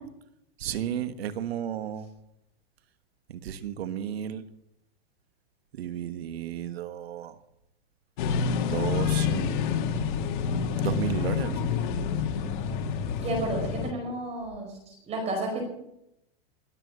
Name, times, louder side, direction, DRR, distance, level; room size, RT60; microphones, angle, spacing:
voice 1, 0.6-2.1 3.3-4.4 5.7-7.4 8.6-9.5 10.8-11.6, right 9 dB, 85° right, 11 dB, 1.5 m, -33 dB
sound 1, 8.2-13.9, left 6 dB, 55° left, 1.8 m, -28 dB
voice 2, 13.2-15.7, right 1 dB, 20° right, 2 dB, 5.0 m, -32 dB
20.5 x 8.0 x 7.2 m, 0.84 s
supercardioid pair, 160°, 30 cm